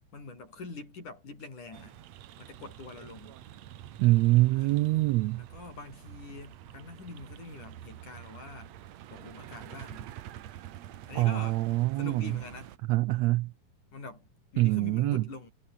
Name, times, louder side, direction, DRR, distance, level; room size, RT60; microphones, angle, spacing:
voice 1, 0.1-2.0 2.4-3.4 4.5-8.8 9.1-10.1 11.1-11.6 12.0-12.8 13.9-15.5, left 3 dB, 75° left, 9.5 m, -44 dB
sound 1, 1.7-12.8, right 12 dB, 65° right, 2.2 m, -48 dB
voice 2, 4.0-5.4 11.2-12.3 12.9-13.5 14.6-15.2, right 19 dB, 85° right, 1.5 m, -24 dB
omnidirectional pair, 3.6 m